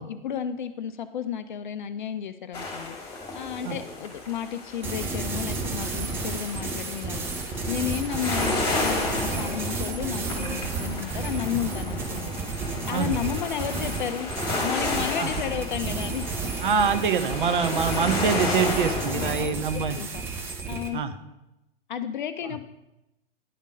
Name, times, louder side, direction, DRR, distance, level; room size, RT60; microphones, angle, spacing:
voice 1, 0.0-7.3 7.7-12.6 12.9-14.3 14.6-16.2 19.1-19.4 19.7-20.2 20.7-21.0 21.9-22.6, left 9 dB, 50° left, 10 dB, 0.4 m, -32 dB
sound 1, 2.5-19.5, left 3 dB, 15° left, 2.0 m, -33 dB
sound 2, 4.8-20.9, right 4 dB, 10° right, 0.4 m, -32 dB
voice 2, 12.9-13.2 15.2-15.3 16.6-20.0 20.9-21.1, right 6 dB, 55° right, 10 dB, 0.7 m, -25 dB
10.0 x 3.6 x 5.0 m, 0.94 s
figure-of-eight pair, 110°, 31 cm